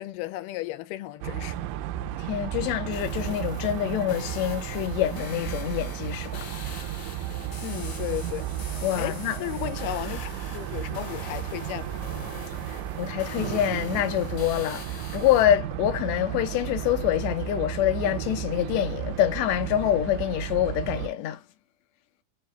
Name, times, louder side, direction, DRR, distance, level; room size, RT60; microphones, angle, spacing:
voice 1, 0.0-1.6 7.6-8.5 9.0-12.0, left 15 dB, 85° left, 2.3 m, -34 dB
sound 1, 1.2-21.1, right 12 dB, 80° right, 1.9 m, -34 dB
voice 2, 2.2-6.5 8.8-9.4 13.0-21.4, left 12 dB, 70° left, 1.7 m, -26 dB
sound 2, 2.9-15.4, left 5 dB, 55° left, 1.1 m, -43 dB
5.6 x 2.3 x 3.1 m
omnidirectional pair, 3.7 m